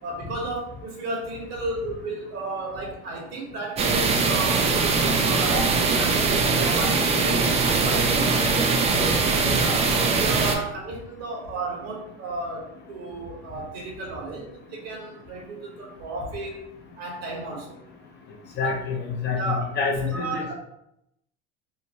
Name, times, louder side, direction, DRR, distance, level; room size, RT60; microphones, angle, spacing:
voice 1, 0.0-7.4 7.9-8.3 8.9-16.7 17.0-17.8 18.6-18.8 19.3-19.6 20.0-20.5, right 2 dB, 50° right, -1 dB, 1.2 m, -33 dB
sound 1, 3.8-10.6, right 4 dB, 20° right, 0.3 m, -21 dB
voice 2, 18.6-20.4, left 5 dB, 30° left, 0 dB, 0.5 m, -27 dB
3.0 x 2.1 x 2.8 m, 0.80 s
hypercardioid pair, 90°, 33 cm